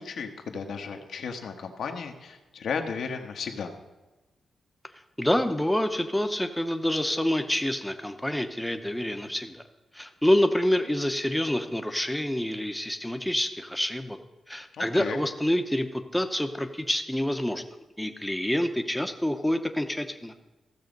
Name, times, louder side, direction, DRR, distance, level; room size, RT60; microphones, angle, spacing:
voice 1, 0.0-3.7 14.7-15.2, left 5 dB, 75° left, 4 dB, 1.3 m, -34 dB
voice 2, 5.2-9.6 9.9-14.2 14.5-17.6 18.0-20.3, left 1 dB, 5° left, 7 dB, 0.8 m, -27 dB
15.5 x 7.1 x 5.3 m, 1.1 s
wide cardioid pair, 140°, 0 cm